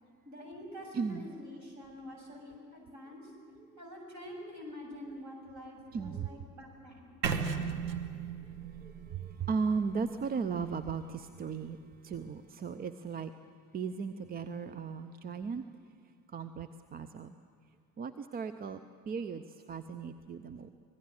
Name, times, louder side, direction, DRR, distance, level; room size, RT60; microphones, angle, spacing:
voice 1, 0.3-3.3 3.8-7.1, left 1 dB, 35° right, 1 dB, 7.3 m, -46 dB
voice 2, 0.9-1.3 5.9-6.4 8.8-11.8 12.0-13.3 13.7-15.6 16.3-17.3 18.0-18.8 19.1-20.7, right 5 dB, 20° right, 12 dB, 0.6 m, -36 dB
sound 1, 7.2-11.2, right 6 dB, 75° right, 1.5 m, -37 dB
25.5 x 18.5 x 7.7 m, 2.4 s
figure-of-eight pair, 70°, 49 cm